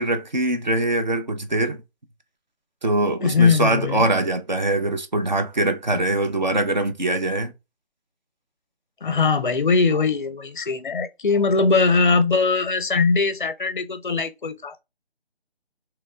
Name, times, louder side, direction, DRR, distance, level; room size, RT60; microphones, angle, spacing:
voice 1, 0.0-1.8 2.8-7.5, right 2 dB, 45° right, 0.5 m, -23 dB
voice 2, 3.2-4.1 9.0-14.8, left 4 dB, 50° left, 0.5 m, -21 dB
3.5 x 2.9 x 2.2 m
figure-of-eight pair, 170°, 32 cm